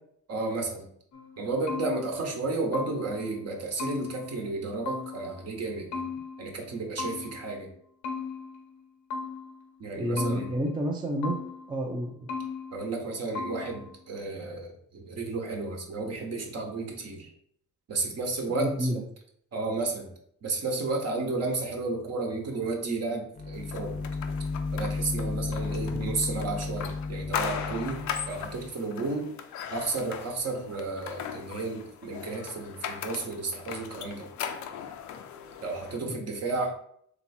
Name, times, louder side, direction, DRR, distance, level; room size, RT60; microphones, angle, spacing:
voice 1, 0.3-0.9 1.4-6.1 6.4-7.7 9.8-10.5 12.7-17.3 17.9-18.9 19.5-20.1 20.4-24.0 24.7-29.3 29.7-34.3 35.6-36.7, right 3 dB, 55° right, 1 dB, 1.1 m, -32 dB
sound 1, 1.1-3.3 3.8-5.5 5.9-7.6 8.0-9.7 10.2-11.8 12.3-13.1 13.4-14.0, left 5 dB, 90° left, 0.9 m, -37 dB
voice 2, 10.0-11.3 11.7-12.3 18.6-19.0 25.9-26.1 36.1-36.2, right 1 dB, 15° right, 1 dB, 0.6 m, -30 dB
sound 2, 23.4-28.7, left 4 dB, 25° left, 0.6 m, -33 dB
sound 3, 23.7-36.0, left 8 dB, 70° left, 0.5 m, -38 dB
3.3 x 2.9 x 4.2 m, 0.68 s
cardioid pair, 90°, 30 cm